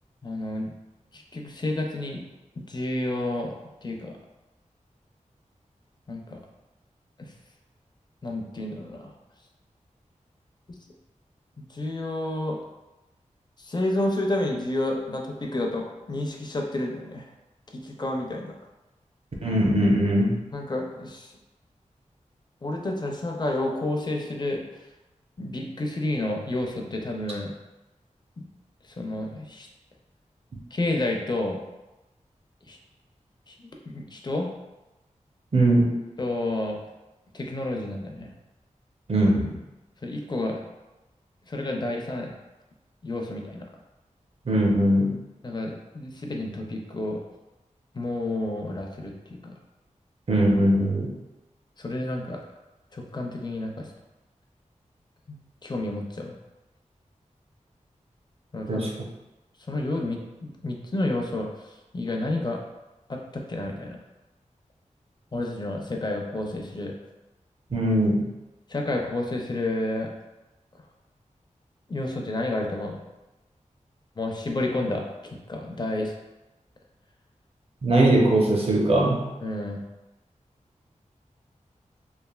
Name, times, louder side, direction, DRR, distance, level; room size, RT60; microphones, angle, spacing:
voice 1, 0.2-0.7 1.1-2.2 2.6-3.5 3.8-4.2 6.1-6.4 8.2-9.0 11.6-12.6 13.6-17.3 17.7-18.6 20.5-21.3 22.6-24.6 25.4-27.5 28.4-28.5 29.0-29.7 30.7-31.6 32.7-32.8 33.5-33.6 33.9-34.5 36.2-36.8 37.3-38.3 40.0-40.6 41.5-42.3 43.0-43.7 45.4-47.2 47.9-49.5 51.8-52.4 52.9-53.9 55.3-56.3 58.5-58.9 59.7-61.5 61.9-62.6 63.1-64.0 65.3-66.9 68.7-70.1 71.9-73.0 74.2-75.1 75.5-76.1 79.4-79.8, left 2 dB, 35° left, 1 dB, 0.4 m, -30 dB
voice 2, 19.4-20.3 35.5-35.9 39.1-39.5 44.5-45.1 50.3-51.1 58.7-58.9 67.7-68.2 77.8-79.2, right 1 dB, 50° right, -2 dB, 0.6 m, -20 dB
3.1 x 2.4 x 2.3 m, 1.0 s
wide cardioid pair, 95°, 13 cm